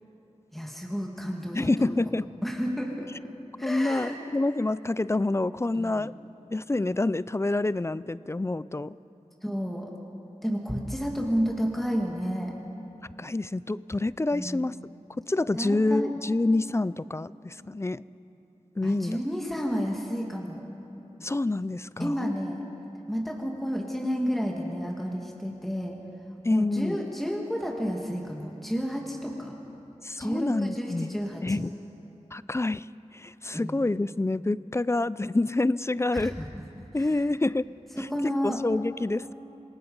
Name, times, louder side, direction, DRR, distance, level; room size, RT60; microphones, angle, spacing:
voice 1, 0.5-2.0 2.4-3.1 3.6-4.2 5.7-6.1 9.4-9.9 10.4-12.5 14.3-14.7 15.6-16.1 18.8-20.6 22.0-22.7 23.1-26.0 26.5-29.5 30.2-31.6 33.5-33.8 36.1-36.6 37.0-37.1 38.0-38.6, equal, ahead, 0 dB, 2.0 m, -31 dB
voice 2, 1.5-2.3 3.6-6.1 6.5-8.9 13.2-14.7 15.2-18.0 18.8-19.2 21.2-22.3 26.4-27.0 30.0-31.7 32.3-36.4 36.9-37.7 38.2-39.3, left 2 dB, 20° left, 18 dB, 0.3 m, -27 dB
26.5 x 18.5 x 5.4 m, 3.0 s
wide cardioid pair, 55°, 12 cm